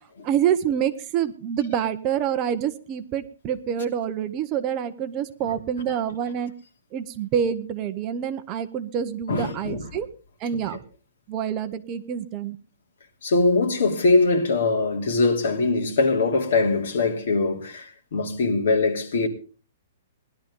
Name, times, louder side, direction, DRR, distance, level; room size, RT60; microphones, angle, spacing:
voice 1, 0.2-6.5 6.9-10.1 10.4-10.8 11.3-12.6, right 9 dB, 20° right, 0.8 m, -27 dB
voice 2, 9.3-9.9 13.2-19.3, left 3 dB, 60° left, 3.1 m, -22 dB
19.5 x 11.5 x 3.8 m
hypercardioid pair, 180°, 0 cm